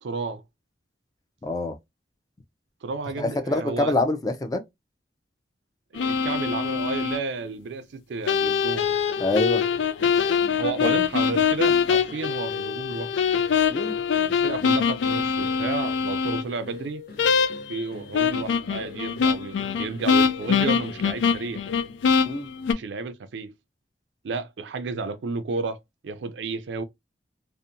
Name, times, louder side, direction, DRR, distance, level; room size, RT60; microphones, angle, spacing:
voice 1, 0.0-0.4 2.8-3.9 5.9-8.8 10.6-13.1 14.3-17.0 17.7-21.6 22.7-23.5 24.2-25.8 26.0-26.8, right 4 dB, 80° right, 0.4 m, -32 dB
voice 2, 1.4-1.8 3.2-4.6 9.2-9.6 10.8-10.9 13.7-14.0 22.2-22.5, left 2 dB, 20° left, 0.4 m, -25 dB
sound 1, 5.9-7.2 8.3-16.4 17.2-17.8 18.1-22.7, left 6 dB, 85° left, 0.3 m, -23 dB
sound 2, 8.7-22.1, left 5 dB, 60° left, 0.7 m, -43 dB
2.7 x 2.1 x 2.5 m
head